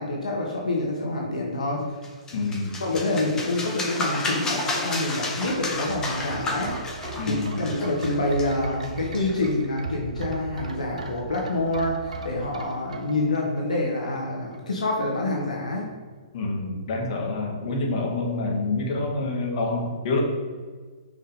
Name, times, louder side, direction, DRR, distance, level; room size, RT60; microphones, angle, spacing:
voice 1, 0.0-1.8 2.8-6.8 7.3-15.9, left 2 dB, 80° left, -1 dB, 1.3 m, -27 dB
sound 1, 2.0-9.5, left 2 dB, 15° left, 1.5 m, -32 dB
voice 2, 2.3-2.8 7.2-7.7 16.3-20.2, left 3 dB, 55° left, 0 dB, 1.9 m, -27 dB
sound 2, 5.4-14.2 14.5-14.6, right 3 dB, 75° right, 1.0 m, -38 dB
5.7 x 5.5 x 4.8 m, 1.5 s
hypercardioid pair, 125°, 4 cm